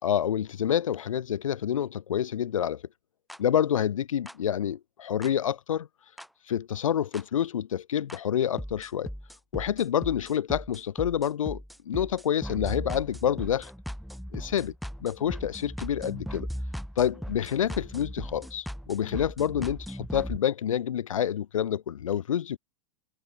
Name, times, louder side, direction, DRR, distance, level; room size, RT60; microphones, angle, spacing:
voice 1, 0.0-2.8 3.4-5.9 6.5-9.1 9.5-11.6 11.9-13.7 14.3-14.7 15.0-16.5 17.0-22.6, left 9 dB, 80° left, 0.8 m, -28 dB
sound 1, 3.3-3.4 4.3-4.4 5.2-5.3 6.2-6.3 7.1-7.2 8.1-8.2 8.6-20.4, equal, ahead, 3.5 m, -38 dB
hypercardioid pair, 105°, 17 cm